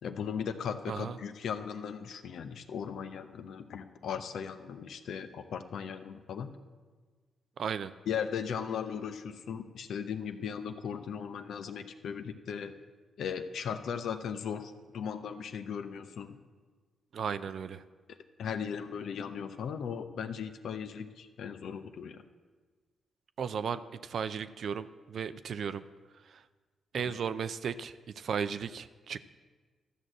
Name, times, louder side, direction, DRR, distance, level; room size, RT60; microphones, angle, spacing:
voice 1, 0.0-6.5 8.1-12.7 13.2-16.4 18.1-22.2 27.0-27.1, left 7 dB, 70° left, 8 dB, 0.7 m, -37 dB
voice 2, 7.6-7.9 17.1-17.8 23.4-25.8 26.3-26.4 26.9-29.2, right 7 dB, 65° right, 13 dB, 0.5 m, -35 dB
13.0 x 6.4 x 7.5 m, 1.4 s
hypercardioid pair, 45°, 0 cm